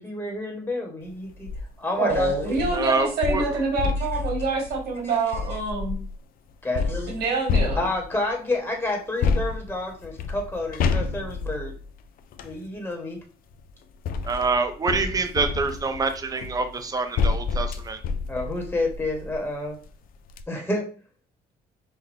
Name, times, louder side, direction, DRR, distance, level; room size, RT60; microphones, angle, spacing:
voice 1, 0.0-1.5 1.8-2.3 2.6-2.7 6.6-7.1 7.8-11.7 12.4-13.2 18.3-19.8 20.5-20.9, left 2 dB, 15° left, 1 dB, 1.3 m, -29 dB
sound 1, 1.3-1.6 2.1-6.1 6.8-8.3 9.2-12.6 13.5-19.4 19.9-20.0 20.3-20.4, left 5 dB, 60° left, 0.5 m, -29 dB
voice 2, 2.0-6.0 7.1-7.8, right 3 dB, 70° right, 0 dB, 1.9 m, -26 dB
voice 3, 2.7-3.6 14.2-18.0, right 4 dB, 20° right, 7 dB, 0.6 m, -26 dB
5.7 x 2.2 x 3.5 m, 0.38 s
cardioid pair, 110°, 17 cm